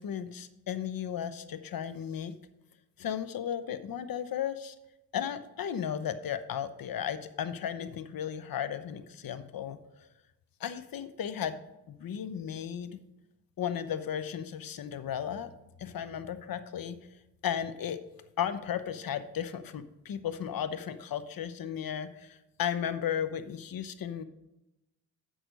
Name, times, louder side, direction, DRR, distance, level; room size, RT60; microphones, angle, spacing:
voice 1, 0.0-2.3 3.0-4.7 5.1-10.1 10.6-11.6 11.9-13.0 13.6-15.5 15.8-17.0 17.4-18.0 18.4-24.2, left 9 dB, 55° left, 12 dB, 0.9 m, -35 dB
7.9 x 6.3 x 5.2 m, 0.92 s
cardioid pair, 65°, 40 cm